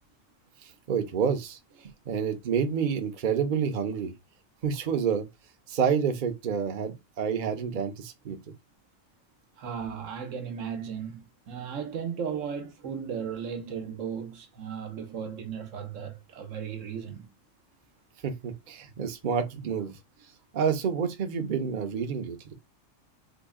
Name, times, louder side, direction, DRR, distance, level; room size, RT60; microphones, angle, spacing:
voice 1, 0.6-4.1 4.6-5.3 5.7-8.4 18.2-20.0 20.5-22.5, right 7 dB, 50° right, 0.7 m, -29 dB
voice 2, 9.6-17.3, right 7 dB, 80° right, 1.1 m, -36 dB
3.9 x 2.1 x 3.5 m
omnidirectional pair, 1.3 m